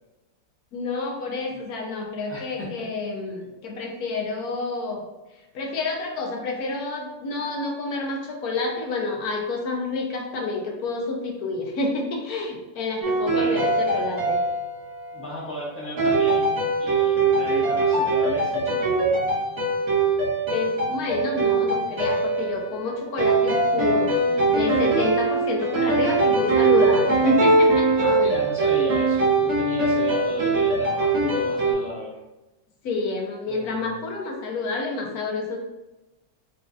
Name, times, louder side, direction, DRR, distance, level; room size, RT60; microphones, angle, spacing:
voice 1, 0.7-5.0 5.5-14.4 20.5-24.1 24.5-28.1 32.8-35.6, left 3 dB, 60° left, 1 dB, 1.1 m, -28 dB
voice 2, 2.3-2.8 13.3-13.7 15.1-19.1 23.7-24.3 28.0-32.2 33.5-33.9, left 2 dB, 10° left, -6 dB, 0.8 m, -35 dB
sound 1, 13.0-15.2 16.0-31.7, right 3 dB, 40° right, 1.5 m, -22 dB
4.3 x 3.7 x 2.5 m, 1.0 s
omnidirectional pair, 2.0 m